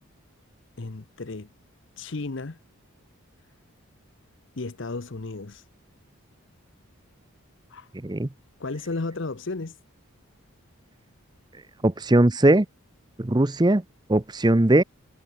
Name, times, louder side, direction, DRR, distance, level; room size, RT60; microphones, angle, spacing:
voice 1, 0.8-1.5 2.0-2.6 4.6-5.7 7.7-7.9 8.6-9.8, left 3 dB, 55° left, 0.8 m, -33 dB
voice 2, 11.8-12.7 13.2-13.8 14.1-14.8, right 1 dB, 20° right, 0.6 m, -19 dB
head